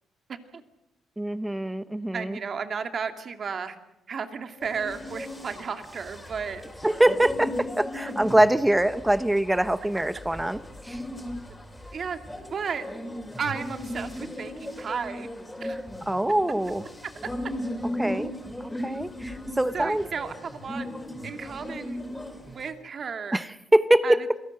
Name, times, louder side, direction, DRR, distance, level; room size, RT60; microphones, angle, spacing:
voice 1, 0.3-0.6 2.1-3.8 4.1-6.6 11.9-12.2 12.5-12.9 13.4-15.3 15.6-15.8 19.7-20.9 21.2-22.0 22.5-23.4 24.0-24.2, right 6 dB, 50° right, 8 dB, 2.4 m, -33 dB
voice 2, 1.2-2.4 6.8-11.0 16.1-16.8 18.0-18.3 18.8-20.1 23.3-24.2, right 1 dB, 10° right, 14 dB, 1.1 m, -23 dB
sound 1, 4.6-22.7, left 1 dB, 10° left, 6.0 m, -37 dB
27.5 x 18.0 x 7.9 m, 0.95 s
cardioid pair, 90°, 0 cm